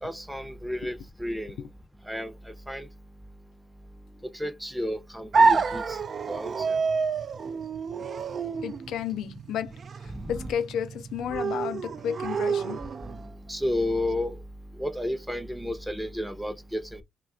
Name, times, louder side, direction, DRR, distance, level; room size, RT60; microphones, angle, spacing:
voice 1, 0.0-1.6 2.0-2.9 4.2-6.0 6.3-6.8 10.1-10.5 13.0-14.4 14.8-17.0, left 1 dB, ahead, 0.6 m, -32 dB
sound 1, 5.3-13.3, right 4 dB, 50° right, 0.3 m, -28 dB
voice 2, 8.5-9.7 10.3-12.8, left 9 dB, 80° left, 0.4 m, -32 dB
2.3 x 2.2 x 3.6 m
cardioid pair, 70°, 0 cm